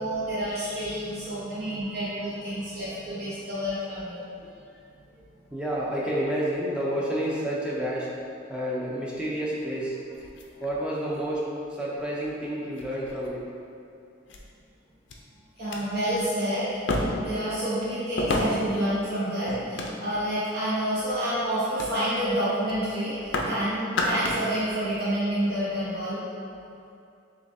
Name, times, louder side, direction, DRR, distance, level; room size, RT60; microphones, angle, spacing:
voice 1, 0.0-4.2 15.6-26.2, right 1 dB, 55° right, -11 dB, 1.0 m, -29 dB
voice 2, 1.3-2.8 5.1-5.2 5.5-8.1 8.5-10.0 10.6-13.5 26.4-26.5, equal, 5° right, -6 dB, 0.6 m, -30 dB
sound 1, 10.1-11.2 12.0-12.1 12.8-13.4 14.3-14.4 15.1-15.2 15.6-15.8 16.9-17.4 18.2-18.8 19.5-20.3 20.9-21.2 21.8-22.0 22.3-22.4 22.7-23.6 23.8-24.5 24.8-24.9, left 1 dB, 65° left, 0.4 m, -30 dB
6.7 x 2.5 x 2.6 m, 2.5 s
head